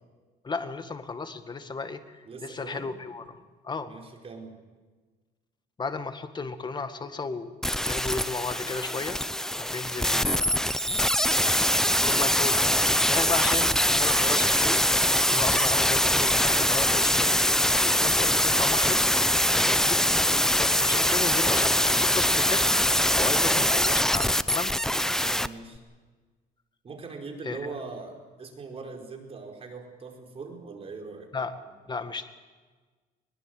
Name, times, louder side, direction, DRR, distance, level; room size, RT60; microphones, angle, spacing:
voice 1, 0.4-3.9 5.8-7.6 7.8-9.3 9.5-10.9 11.3-11.4 12.0-14.8 15.3-17.4 17.8-19.0 19.5-20.1 20.6-22.7 23.1-24.7 27.4-27.7 31.3-31.5 31.9-32.2, left 4 dB, 25° left, 9 dB, 1.9 m, -34 dB
voice 2, 2.3-2.9 3.8-4.6 25.2-25.8 26.8-31.3, right 4 dB, 35° right, 2 dB, 4.6 m, -41 dB
sound 1, 7.6-25.5 25.8-25.9, left 1 dB, 5° left, 0.7 m, -23 dB
sound 2, 10.6-15.9, right 11 dB, 60° right, 2.5 m, -37 dB
22.0 x 21.0 x 7.9 m, 1.4 s
cardioid pair, 110°, 17 cm